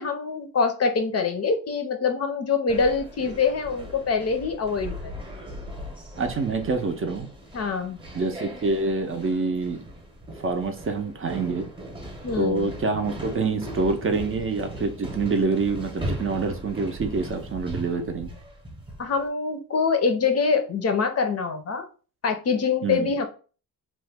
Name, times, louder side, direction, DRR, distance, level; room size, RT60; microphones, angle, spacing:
voice 1, 0.0-5.2 7.5-8.0 12.2-12.7 19.0-21.9 22.2-23.3, left 5 dB, 45° left, 7 dB, 0.5 m, -25 dB
sound 1, 2.7-19.2, right 1 dB, 15° right, 0.8 m, -38 dB
voice 2, 6.2-7.3 8.1-9.8 10.4-11.7 12.4-18.3 22.8-23.1, right 3 dB, 35° right, 5 dB, 0.5 m, -26 dB
2.9 x 2.1 x 3.3 m, 0.37 s
cardioid pair, 115°, 36 cm